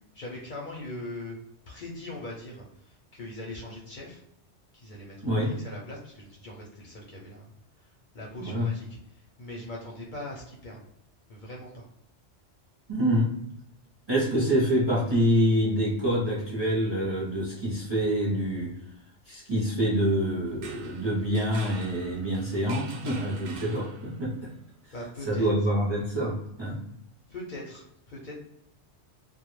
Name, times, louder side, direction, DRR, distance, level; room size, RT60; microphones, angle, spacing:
voice 1, 0.1-1.4 1.7-4.2 4.7-7.4 7.8-10.8 11.3-11.9 24.9-25.5 27.3-28.4, left 1 dB, 55° left, -2 dB, 0.6 m, -41 dB
voice 2, 5.2-5.5 8.4-8.7 12.9-13.3 14.1-18.7 19.3-24.5 25.3-26.8, equal, 30° right, -5 dB, 0.5 m, -26 dB
sound 1, 20.5-24.4, right 5 dB, 80° right, 0.9 m, -45 dB
2.1 x 2.1 x 3.0 m, 0.78 s
omnidirectional pair, 1.2 m